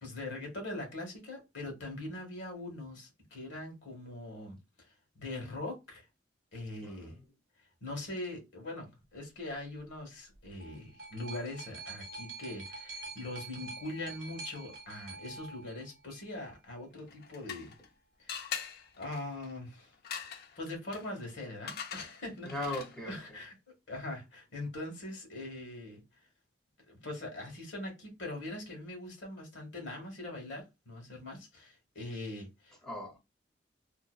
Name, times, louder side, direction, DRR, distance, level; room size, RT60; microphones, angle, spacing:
voice 1, 0.0-4.6 5.1-6.0 6.5-7.1 7.8-17.7 18.2-19.9 20.2-22.5 23.1-23.5 23.9-26.0 26.9-32.8, left 2 dB, 85° left, 1.2 m, -42 dB
voice 2, 6.8-7.3 22.4-23.4 32.8-33.2, left 1 dB, 5° left, 0.8 m, -39 dB
sound 1, 10.3-16.3 17.2-17.3, right 3 dB, 50° right, 1.2 m, -46 dB
sound 2, 17.0-17.9 18.3-23.1, left 7 dB, 60° left, 0.4 m, -43 dB
2.7 x 2.1 x 2.3 m
head